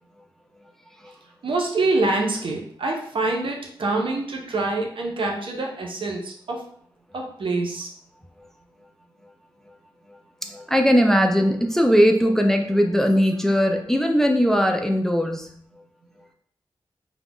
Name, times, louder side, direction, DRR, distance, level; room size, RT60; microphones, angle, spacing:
voice 1, 1.4-6.6 7.1-7.9, right 2 dB, 65° right, 0 dB, 0.6 m, -25 dB
voice 2, 10.4-15.5, equal, 5° left, 3 dB, 0.4 m, -19 dB
2.4 x 2.1 x 3.4 m, 0.64 s
cardioid pair, 55°, 9 cm